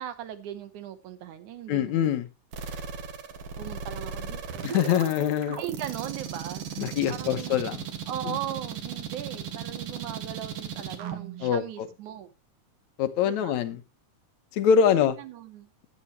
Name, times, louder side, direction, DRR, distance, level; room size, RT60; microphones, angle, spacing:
voice 1, 0.0-2.1 3.6-5.2 5.6-6.6 7.1-7.6 8.1-12.3 13.2-13.7 14.8-15.7, right 11 dB, 80° right, 2.5 m, -38 dB
voice 2, 1.7-2.3 4.6-5.6 6.8-7.8 8.3-8.4 11.4-11.6 13.0-13.8 14.5-15.2, left 8 dB, 75° left, 2.3 m, -24 dB
sound 1, 2.5-11.5, right 7 dB, 55° right, 2.1 m, -36 dB
14.5 x 8.9 x 3.1 m
omnidirectional pair, 3.5 m